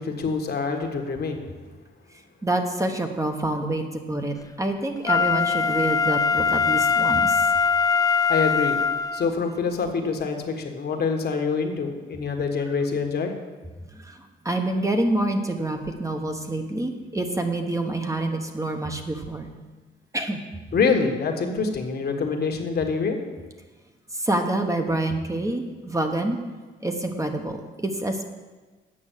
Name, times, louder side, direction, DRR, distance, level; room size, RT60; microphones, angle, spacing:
voice 1, 0.0-1.4 8.3-8.8 9.1-13.3 20.7-23.2, left 5 dB, 55° left, 3 dB, 1.5 m, -25 dB
voice 2, 2.4-7.5 13.9-19.5 20.1-20.4 24.1-26.4 26.8-28.3, right 1 dB, 15° right, 4 dB, 1.1 m, -27 dB
Wind instrument woodwind instrument, 5.0-9.3 9.8-9.9, left 5 dB, 20° left, 0.4 m, -22 dB
8.8 x 6.1 x 7.4 m, 1.3 s
cardioid pair, 90°, 20 cm